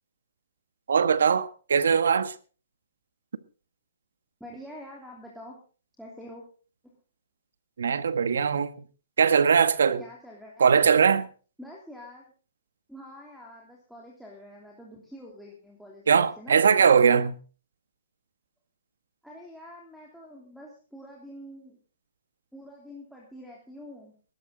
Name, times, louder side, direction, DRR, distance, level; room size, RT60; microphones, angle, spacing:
voice 1, 0.9-2.3 7.8-8.7 9.2-10.0 10.6-11.3 16.1-17.4, right 6 dB, 75° right, 1.3 m, -21 dB
voice 2, 4.4-5.6 6.0-6.4 6.8-6.9 10.0-10.7 11.6-12.3 12.9-16.6 19.2-21.8 22.5-24.1, equal, ahead, 3.1 m, -46 dB
19.5 x 12.0 x 3.9 m
hypercardioid pair, 145°, 0 cm